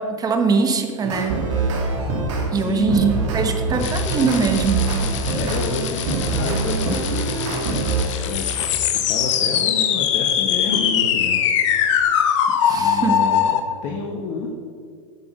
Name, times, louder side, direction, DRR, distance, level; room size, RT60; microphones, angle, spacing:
voice 1, 0.0-1.4 2.5-4.9 12.6-13.2, right 5 dB, 20° right, 6 dB, 1.1 m, -22 dB
Beep Scale Upgrade, 1.0-2.5 2.9-8.0, right 3 dB, 65° right, 2.2 m, -24 dB
voice 2, 2.5-3.6 5.3-7.7 8.0-12.1 12.7-14.5, left 4 dB, 50° left, 1 dB, 1.2 m, -30 dB
sound 1, 3.8-13.6, left 9 dB, 65° left, 0.9 m, -22 dB
9.7 x 6.0 x 5.2 m, 2.1 s
hypercardioid pair, 105°, 17 cm